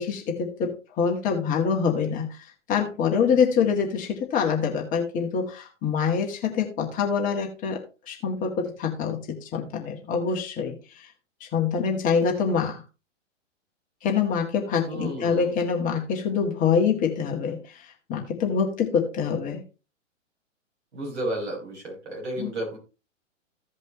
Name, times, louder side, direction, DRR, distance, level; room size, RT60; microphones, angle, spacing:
voice 1, 0.0-11.1 11.4-12.8 14.0-19.6 22.4-22.5, left 6 dB, 20° left, 1 dB, 1.8 m, -25 dB
voice 2, 14.8-15.5 20.9-22.8, right 1 dB, 60° right, -1 dB, 5.1 m, -32 dB
15.5 x 5.2 x 3.1 m, 0.31 s
figure-of-eight pair, 115°, 39 cm